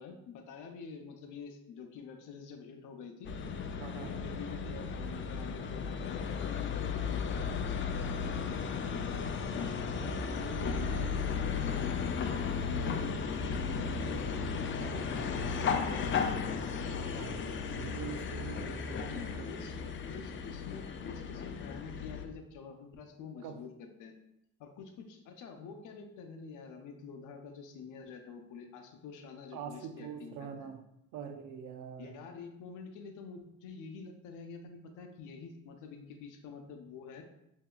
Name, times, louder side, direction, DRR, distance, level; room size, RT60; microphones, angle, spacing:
voice 1, 0.0-3.3 3.9-9.8 10.6-11.9 13.3-13.5 19.0-19.7 20.0-24.1 24.6-30.7 32.0-37.2, left 5 dB, 90° left, 5 dB, 0.6 m, -48 dB
sound 1, 3.2-22.2, left 5 dB, 40° left, 0.4 m, -35 dB
voice 2, 3.8-4.1 10.9-11.1 14.8-16.2 17.1-17.4 17.7-19.6 23.4-23.6 29.5-30.8 31.1-32.1, right 7 dB, 85° right, 7 dB, 0.5 m, -44 dB
5.7 x 2.7 x 2.3 m, 0.81 s
cardioid pair, 90°, 30 cm